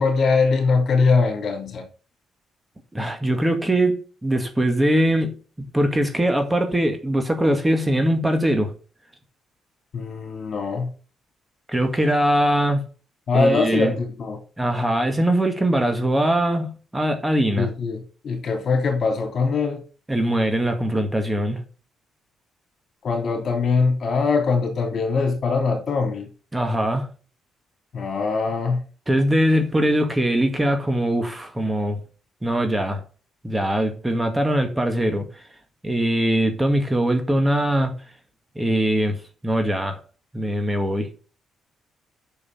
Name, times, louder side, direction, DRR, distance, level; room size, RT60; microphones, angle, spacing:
voice 1, 0.0-1.9 9.9-10.9 13.3-14.4 17.6-19.8 23.0-26.3 27.9-28.8, left 4 dB, 55° left, 3.2 m, -22 dB
voice 2, 2.9-8.7 11.7-12.8 13.3-13.9 14.6-17.7 20.1-21.6 26.5-27.1 29.1-32.0 32.4-33.0 33.4-35.5 35.8-37.9 38.6-39.2 39.4-40.0 40.3-41.1, right 1 dB, 15° right, 1.9 m, -21 dB
6.9 x 6.7 x 7.1 m
cardioid pair, 90°, 0 cm